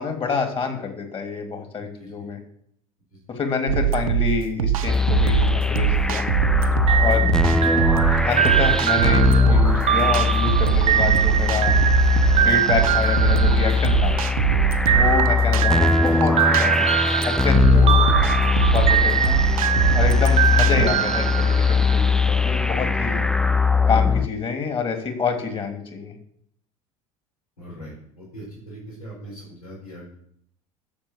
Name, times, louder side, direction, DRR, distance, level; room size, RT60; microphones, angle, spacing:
voice 1, 0.0-2.4 3.3-6.2 7.0-7.3 8.3-11.8 12.4-14.2 14.9-16.9 17.2-18.0 18.7-19.4 19.9-23.2 23.9-26.1, left 5 dB, 30° left, 5 dB, 3.0 m, -27 dB
voice 2, 1.8-2.2 3.1-3.2 20.2-20.5 27.6-30.2, equal, 75° left, -3 dB, 4.6 m, -41 dB
sound 1, 3.7-20.9, right 10 dB, 65° right, 0.9 m, -23 dB
sound 2, 4.9-24.3, left 4 dB, 5° left, 0.4 m, -21 dB
sound 3, 6.9-14.3 14.9-22.1, right 10 dB, 30° right, 0.9 m, -23 dB
12.0 x 7.1 x 7.4 m, 0.70 s
figure-of-eight pair, 65°, 19 cm